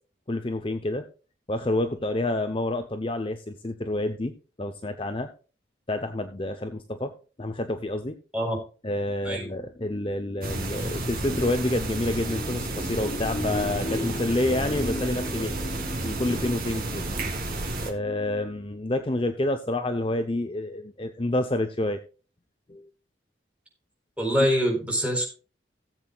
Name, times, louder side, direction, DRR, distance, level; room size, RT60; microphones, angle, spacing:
voice 1, 0.3-1.0 1.5-4.3 4.6-5.3 5.9-8.2 8.8-17.3 17.8-22.0 22.7-22.8, left 1 dB, 30° left, 7 dB, 0.7 m, -28 dB
sound 1, 10.4-17.9, right 2 dB, 50° right, 2.3 m, -31 dB
voice 2, 24.2-25.2, equal, 5° right, 0 dB, 4.2 m, -24 dB
18.0 x 7.9 x 2.3 m, 0.35 s
head